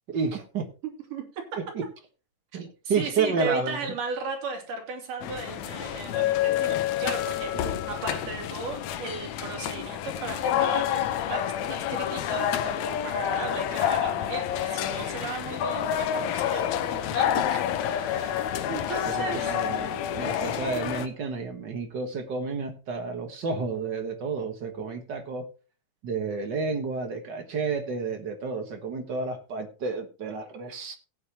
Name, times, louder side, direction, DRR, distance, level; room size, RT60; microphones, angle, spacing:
voice 1, 0.1-0.7 1.7-1.8 2.5-3.9 7.5-7.8 19.0-25.5 26.0-31.0, right 4 dB, 55° right, 6 dB, 1.2 m, -31 dB
voice 2, 0.8-1.6 2.5-19.6, right 4 dB, 75° right, 3 dB, 4.3 m, -36 dB
sound 1, 5.2-21.1, left 10 dB, 70° left, 2.0 m, -28 dB
Wind instrument woodwind instrument, 11.7-18.4, right 2 dB, 10° left, 4.2 m, -56 dB
16.5 x 9.2 x 2.9 m, 0.33 s
omnidirectional pair, 3.8 m